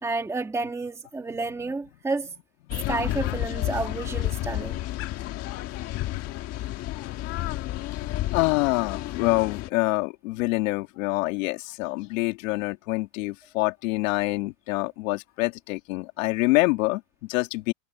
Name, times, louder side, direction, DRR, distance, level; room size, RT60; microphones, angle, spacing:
voice 1, 0.0-2.3 2.9-4.8, right 3 dB, 5° right, 1.7 m, -30 dB
sound 1, 2.7-9.7, left 15 dB, 35° left, 1.7 m, -31 dB
voice 2, 8.3-17.7, left 22 dB, 65° left, 2.5 m, -26 dB
supercardioid pair, 155°, 42 cm